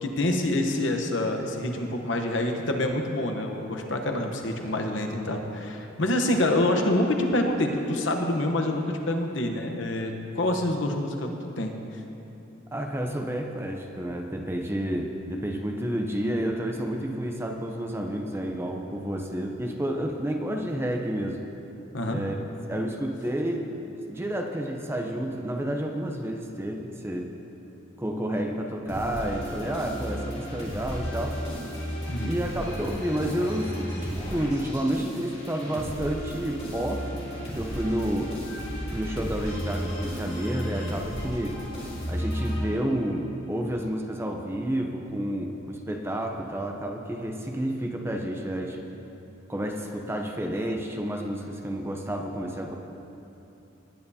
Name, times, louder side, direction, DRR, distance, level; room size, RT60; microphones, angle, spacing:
voice 1, 0.0-11.7 21.9-22.2 32.1-32.3, left 1 dB, 65° left, 3 dB, 1.0 m, -26 dB
voice 2, 12.7-21.4 22.1-22.4 22.7-27.3 28.0-31.4 32.2-37.2 37.5-38.4 38.9-41.6 42.1-48.9 49.5-52.7, right 1 dB, 10° right, 2 dB, 0.6 m, -30 dB
sound 1, 28.9-43.1, equal, 30° left, 2.8 m, -34 dB
19.0 x 9.4 x 2.8 m, 2.9 s
head